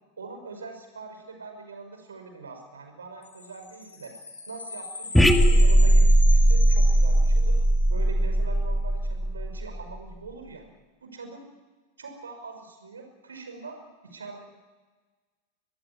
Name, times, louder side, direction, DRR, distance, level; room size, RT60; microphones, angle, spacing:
voice 1, 0.2-4.1 4.5-7.6 7.9-10.6 11.0-11.5 12.0-13.8 14.0-14.4, right 4 dB, 70° right, 5 dB, 5.7 m, -42 dB
sound 1, 3.2-7.8, left 3 dB, 75° left, 3.7 m, -39 dB
sound 2, 5.1-9.8, right 1 dB, ahead, 1.8 m, -19 dB
24.5 x 19.0 x 9.8 m, 1.3 s
figure-of-eight pair, 90°, 0 cm